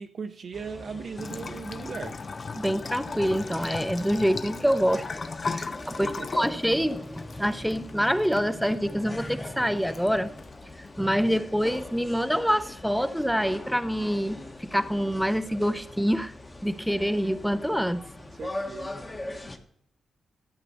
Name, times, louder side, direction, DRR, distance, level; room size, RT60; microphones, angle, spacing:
voice 1, 0.0-2.2 5.9-6.5 18.3-18.9, right 5 dB, 55° right, 4 dB, 0.7 m, -38 dB
sound 1, 0.5-19.6, left 2 dB, 20° left, 1.3 m, -42 dB
Bathtub (filling or washing) / Trickle dribble, 1.2-12.1, left 4 dB, 40° left, 0.5 m, -39 dB
voice 2, 2.6-5.0 5.4-10.3 10.8-16.3 16.6-18.0, equal, ahead, 12 dB, 0.6 m, -26 dB
13.0 x 8.1 x 4.2 m, 0.69 s
cardioid pair, 105°, 0 cm